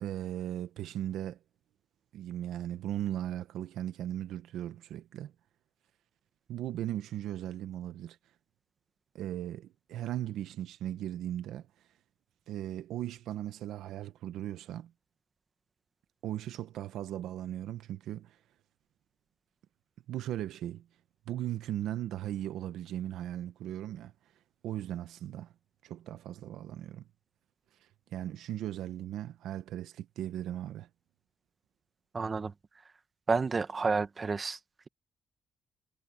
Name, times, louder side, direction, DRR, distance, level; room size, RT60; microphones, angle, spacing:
voice 1, 0.0-1.4 2.1-5.3 6.5-8.2 9.1-11.7 12.5-14.9 16.2-18.4 20.1-20.9 21.3-24.1 24.6-25.5 25.8-27.1 27.8-30.9, right 12 dB, 80° right, 0.9 m, -37 dB
voice 2, 32.1-32.5 33.3-34.6, right 4 dB, 35° right, 1.4 m, -30 dB
cardioid pair, 90°, 0 cm